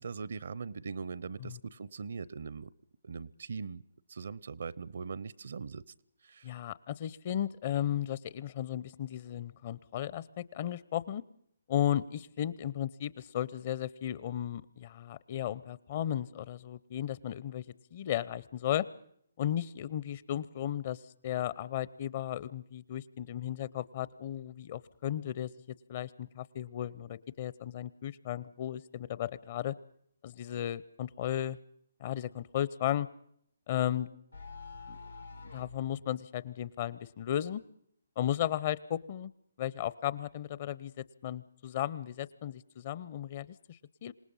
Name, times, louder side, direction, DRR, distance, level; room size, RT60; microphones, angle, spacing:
voice 1, 0.0-2.7 3.0-3.8 4.1-5.8 6.2-6.5, right 5 dB, 65° right, 21 dB, 0.7 m, -40 dB
voice 2, 6.4-11.2 11.7-17.6 17.9-18.9 19.4-29.7 30.2-31.6 32.0-33.1 33.7-34.1 34.9-35.0 35.4-37.6 38.2-39.3 39.6-44.1, left 11 dB, 40° left, 19 dB, 0.7 m, -35 dB
sound 1, 33.7-35.9, left 4 dB, 90° left, 2.1 m, -47 dB
27.0 x 18.5 x 5.6 m, 0.68 s
figure-of-eight pair, 140°, 0 cm